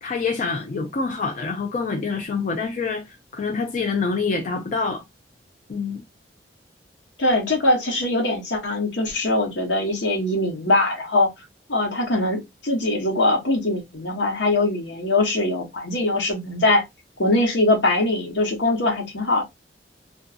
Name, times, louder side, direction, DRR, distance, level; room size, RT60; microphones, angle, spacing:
voice 1, 0.0-5.0 5.7-6.0, left 4 dB, 45° left, 0.4 m, -26 dB
voice 2, 7.2-11.3 11.7-16.8 17.2-19.4, left 2 dB, 80° left, 1.1 m, -22 dB
2.5 x 2.2 x 2.4 m
head